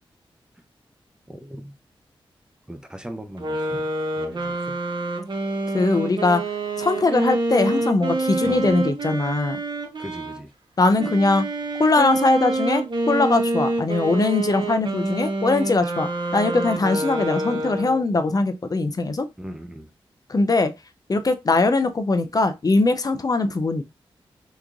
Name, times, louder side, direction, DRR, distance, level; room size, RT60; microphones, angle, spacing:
voice 1, 1.3-1.7 2.7-3.8 4.2-4.8 8.4-8.8 10.0-10.5 19.4-19.9, right 1 dB, 10° right, 0.6 m, -38 dB
sound 1, 3.4-10.4 11.0-18.2, right 2 dB, 50° right, 1.0 m, -27 dB
voice 2, 5.7-6.4 6.8-9.6 10.8-11.4 11.8-16.1 16.3-19.2 20.3-20.7 21.1-23.8, left 3 dB, 40° left, 0.5 m, -21 dB
3.5 x 3.1 x 2.4 m
cardioid pair, 55°, 10 cm